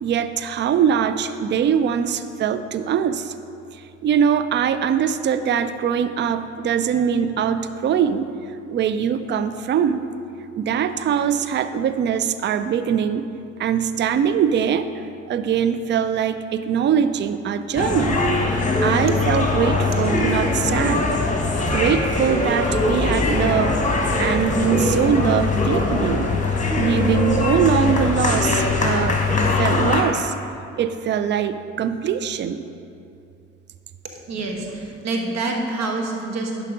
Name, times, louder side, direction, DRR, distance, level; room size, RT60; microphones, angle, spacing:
voice 1, 0.0-3.3 3.7-8.3 8.7-10.0 10.6-13.3 13.6-18.2 18.8-21.1 21.7-23.8 24.2-26.3 26.8-30.3 30.8-32.6, right 8 dB, 30° right, 11 dB, 0.4 m, -22 dB
sound 1, 17.7-30.0, left 3 dB, 20° left, 1.4 m, -21 dB
voice 2, 34.3-36.6, right 2 dB, 45° right, 2 dB, 1.3 m, -26 dB
10.5 x 3.8 x 5.1 m, 2.6 s
figure-of-eight pair, 45°, 36 cm